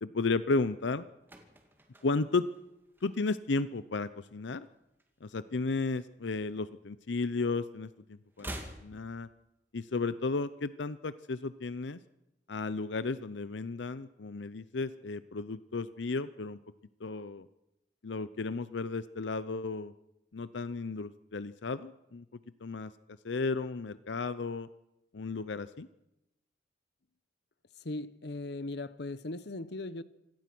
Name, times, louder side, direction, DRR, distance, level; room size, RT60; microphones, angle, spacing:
voice 1, 0.0-1.0 2.0-2.5 3.0-4.7 5.2-8.5 8.8-9.3 9.7-12.0 12.5-16.6 17.0-17.5 18.0-19.9 20.3-22.2 22.6-22.9 23.2-24.7 25.1-25.9, left 3 dB, 85° left, 0.7 m, -33 dB
sound 1, 1.2-3.6 3.8-4.1 4.4-5.9 6.2-7.5 7.8-9.9 10.1-10.2, right 1 dB, 10° right, 2.5 m, -48 dB
voice 2, 27.8-30.0, left 2 dB, 65° left, 0.9 m, -38 dB
26.5 x 17.5 x 6.1 m
head